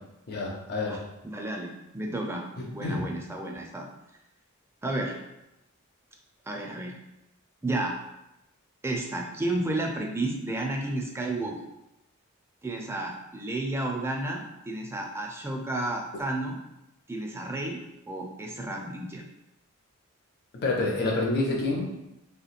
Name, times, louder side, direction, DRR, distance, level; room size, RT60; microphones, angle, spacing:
voice 1, 0.3-1.0 2.8-3.0 20.6-21.9, left 2 dB, 45° left, -2 dB, 0.5 m, -27 dB
voice 2, 0.9-2.4 2.7-3.9 4.8-5.2 6.5-6.9 7.6-8.0 8.8-11.6 12.6-16.6 17.1-17.8 18.1-19.2, right 2 dB, 10° right, 1 dB, 0.4 m, -32 dB
3.3 x 2.9 x 2.4 m, 0.91 s
head